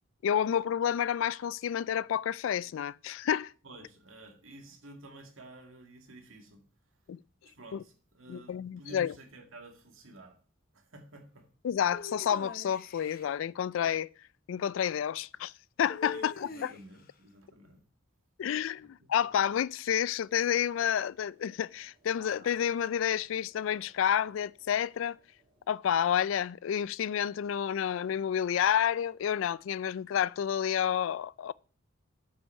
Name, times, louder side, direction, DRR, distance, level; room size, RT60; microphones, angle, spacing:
voice 1, 0.2-3.5 7.1-7.2 7.7-7.8 8.3-9.1 11.6-14.1 14.5-15.5 15.8-16.7 18.4-25.2 25.7-31.5, left 9 dB, 75° left, 0.3 m, -30 dB
voice 2, 3.6-6.6 7.4-10.4 10.7-11.5 16.1-17.8 18.8-19.3, right 2 dB, 85° right, 1.9 m, -52 dB
sound 1, 11.9-13.3 15.9-17.0, left 3 dB, 45° left, 0.9 m, -43 dB
sound 2, 19.9-25.7, right 2 dB, 25° right, 3.2 m, -63 dB
8.1 x 5.9 x 5.4 m
head